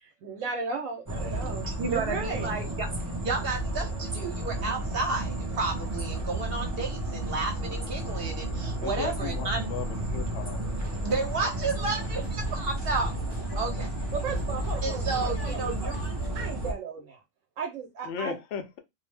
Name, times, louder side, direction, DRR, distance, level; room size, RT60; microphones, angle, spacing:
voice 1, 0.0-2.5 14.1-15.9 16.3-17.2 17.6-18.4, right 5 dB, 80° right, 1.1 m, -35 dB
sound 1, 1.1-16.7, right 1 dB, 20° right, 0.5 m, -32 dB
voice 2, 1.6-2.9 3.2-9.7 11.0-13.2 13.5-13.9 14.8-16.0, right 3 dB, 50° right, 1.0 m, -32 dB
voice 3, 8.8-10.6 18.0-18.8, left 8 dB, 70° left, 0.8 m, -36 dB
sound 2, 10.4-16.5, equal, 25° left, 0.7 m, -43 dB
2.6 x 2.0 x 3.2 m
omnidirectional pair, 1.4 m